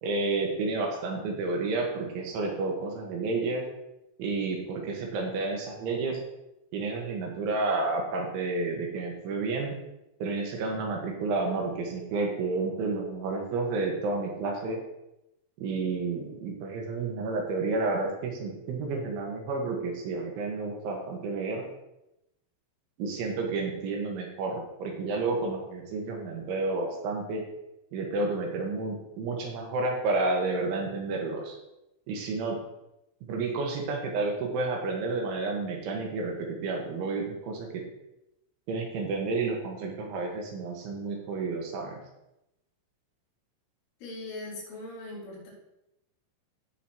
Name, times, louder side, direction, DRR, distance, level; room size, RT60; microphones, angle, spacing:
voice 1, 0.0-3.6 4.2-6.2 6.7-9.7 10.2-14.8 15.6-21.6 23.0-27.4 27.9-31.6 32.1-32.6 33.3-37.8 38.7-42.0, right 3 dB, 75° right, 1 dB, 3.9 m, -30 dB
voice 2, 44.0-45.5, left 2 dB, 75° left, -6 dB, 6.1 m, -40 dB
16.5 x 6.9 x 3.0 m, 0.89 s
omnidirectional pair, 5.6 m